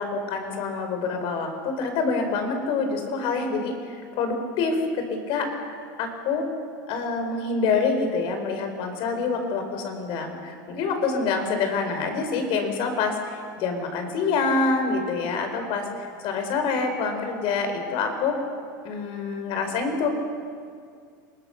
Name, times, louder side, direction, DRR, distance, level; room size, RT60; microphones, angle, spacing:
voice 1, 0.0-3.7 4.1-5.5 6.0-6.4 6.9-18.3 18.8-20.1, left 4 dB, 55° left, 5 dB, 5.0 m, -26 dB
27.5 x 20.5 x 6.8 m, 2.2 s
supercardioid pair, 115°, 11 cm